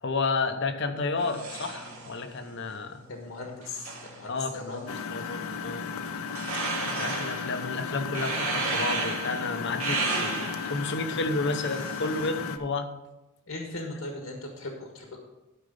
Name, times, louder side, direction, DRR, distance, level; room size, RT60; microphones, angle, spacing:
voice 1, 0.0-3.0 4.3-5.9 6.9-12.9, left 3 dB, 60° left, 7 dB, 0.9 m, -31 dB
sound 1, 1.2-12.3, right 3 dB, 75° right, 2.3 m, -35 dB
voice 2, 3.1-4.8 13.5-15.2, left 2 dB, 75° left, 1 dB, 1.6 m, -38 dB
Engine, 4.9-12.6, left 6 dB, 90° left, 0.7 m, -35 dB
12.5 x 5.2 x 5.5 m, 1.0 s
head